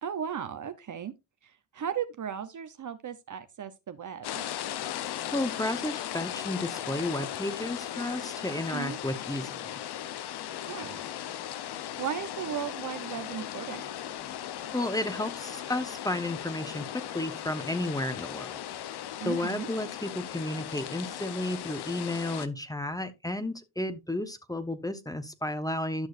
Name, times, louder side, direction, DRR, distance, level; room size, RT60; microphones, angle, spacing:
voice 1, 0.0-1.1 1.7-4.4 8.7-9.0 10.7-11.0 12.0-13.9 19.2-19.7, right 8 dB, 45° right, 0.9 m, -36 dB
sound 1, 4.2-22.5, left 11 dB, 65° left, 0.8 m, -37 dB
voice 2, 5.3-9.6 14.7-18.6 19.2-26.1, left 1 dB, 10° left, 1.2 m, -32 dB
12.0 x 6.2 x 2.6 m
cardioid pair, 80°, 43 cm